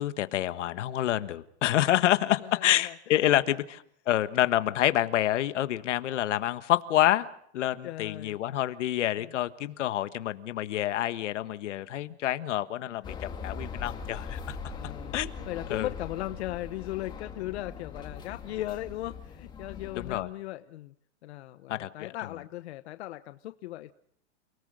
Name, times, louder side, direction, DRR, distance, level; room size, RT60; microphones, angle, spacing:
voice 1, 0.0-7.3 7.5-14.6 14.8-15.4 15.7-15.9 20.0-20.3 21.7-22.1, left 13 dB, 85° left, 11 dB, 1.5 m, -28 dB
voice 2, 2.4-2.9 3.2-3.3 7.8-8.4 9.2-9.3 14.7-15.2 15.5-20.9 21.2-23.9, left 15 dB, 65° left, 11 dB, 1.0 m, -38 dB
sound 1, 13.0-20.2, left 5 dB, 10° left, 2.3 m, -41 dB
29.5 x 18.5 x 6.4 m, 0.69 s
supercardioid pair, 165°, 35 cm